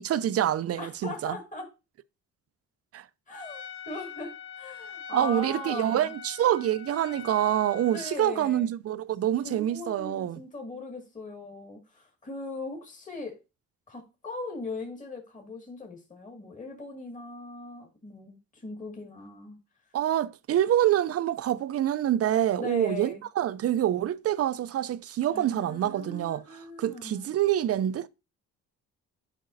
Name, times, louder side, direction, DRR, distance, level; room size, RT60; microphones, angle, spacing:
voice 1, 0.0-1.4 2.9-3.0 5.1-10.4 19.9-28.1, right 11 dB, 50° right, 0.5 m, -26 dB
voice 2, 0.8-1.7 3.3-6.1 7.9-8.7 9.4-13.4 13.9-19.6 22.6-23.2 25.3-27.3, left 3 dB, 25° left, 2.0 m, -39 dB
Trumpet, 3.3-8.2, left 7 dB, 45° left, 1.2 m, -44 dB
10.5 x 5.3 x 2.6 m
cardioid pair, 90°, 30 cm